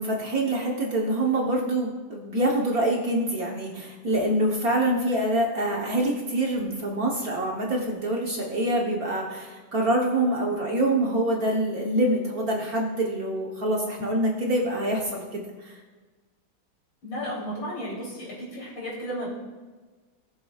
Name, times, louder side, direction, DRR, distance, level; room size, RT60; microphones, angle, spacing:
voice 1, 0.0-15.8, right 1 dB, 50° right, -1 dB, 1.4 m, -25 dB
voice 2, 17.0-19.3, equal, 60° left, -5 dB, 3.9 m, -33 dB
18.0 x 7.1 x 2.4 m, 1.3 s
omnidirectional pair, 2.3 m